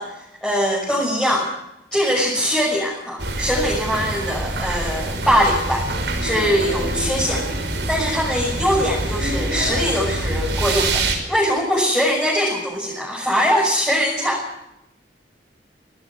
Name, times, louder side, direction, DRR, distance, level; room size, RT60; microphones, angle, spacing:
voice 1, 0.0-1.5 1.9-5.8 6.2-7.4 7.9-14.6, equal, 5° left, -4 dB, 6.1 m, -22 dB
sound 1, 3.2-11.2, right 2 dB, 85° right, 5.4 m, -25 dB
25.5 x 18.0 x 6.4 m, 0.85 s
head